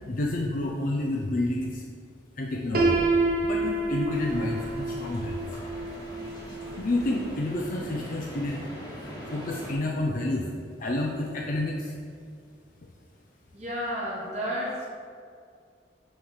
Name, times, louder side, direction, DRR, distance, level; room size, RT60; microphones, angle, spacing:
voice 1, 0.1-1.8 2.4-3.0 3.4-5.5 6.8-8.6 9.3-10.5 10.8-11.9, left 2 dB, 50° left, -1 dB, 0.5 m, -29 dB
Piano, 2.7-8.6, right 2 dB, 55° right, 0.7 m, -29 dB
sound 1, 4.1-9.7, left 1 dB, 25° left, 1.2 m, -42 dB
voice 2, 13.5-14.9, equal, 40° right, -6 dB, 1.3 m, -31 dB
6.2 x 3.2 x 5.6 m, 2.2 s
head